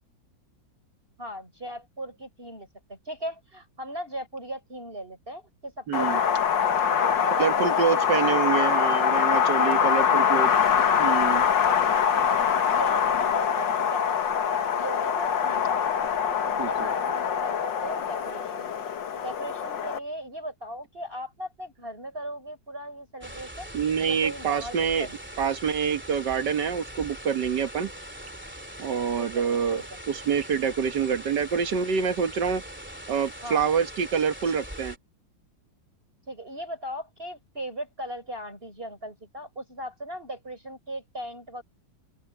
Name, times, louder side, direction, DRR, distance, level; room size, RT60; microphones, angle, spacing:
voice 1, 1.2-8.8 9.7-10.4 11.7-12.4 12.7-14.1 14.8-15.9 16.4-18.7 19.2-23.7 24.1-25.2 29.2-29.4 33.4-33.8 36.3-41.6, equal, 30° right, 6.1 m, -38 dB
Wind, 5.9-20.0, left 7 dB, 70° left, 2.0 m, -24 dB
voice 2, 5.9-6.2 7.4-10.5 11.0-11.5 16.6-16.9 23.7-25.1 25.4-27.9 28.8-32.6 33.1-34.9, right 7 dB, 60° right, 1.8 m, -26 dB
sound 1, 23.2-35.0, equal, 5° right, 2.7 m, -42 dB
open air
omnidirectional pair, 2.1 m